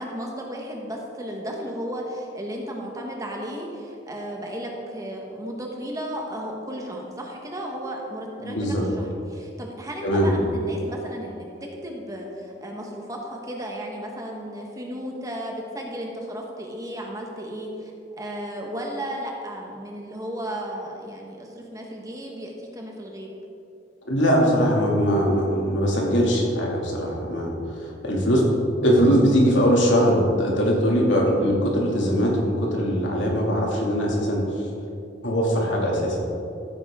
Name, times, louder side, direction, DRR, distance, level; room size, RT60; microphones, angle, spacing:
voice 1, 0.0-11.5 11.8-17.9 18.2-23.3, equal, 20° right, 0 dB, 1.3 m, -34 dB
voice 2, 8.4-8.8 10.0-10.4 24.0-28.4 28.8-34.6 35.2-36.3, equal, 80° left, -2 dB, 2.4 m, -21 dB
14.5 x 8.9 x 3.7 m, 2.6 s
head